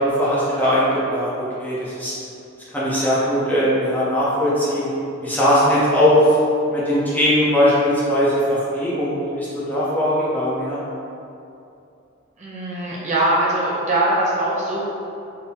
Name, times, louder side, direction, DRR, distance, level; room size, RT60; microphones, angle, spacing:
voice 1, 0.0-2.1 2.7-4.9 5.2-6.3 6.7-10.8, equal, 10° left, -9 dB, 0.8 m, -19 dB
voice 2, 12.4-14.8, right 1 dB, 35° right, -7 dB, 0.7 m, -21 dB
3.7 x 2.9 x 4.2 m, 2.7 s
head